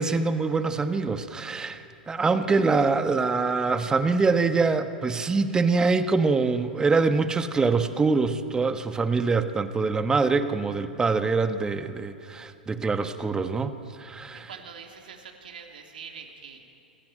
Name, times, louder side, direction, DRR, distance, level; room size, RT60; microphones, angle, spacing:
voice 1, 0.0-14.5, right 4 dB, 15° right, 10 dB, 1.3 m, -24 dB
voice 2, 14.5-16.6, right 6 dB, 65° right, 2 dB, 3.2 m, -43 dB
27.0 x 18.0 x 9.0 m, 2.8 s
figure-of-eight pair, 100°, 5 cm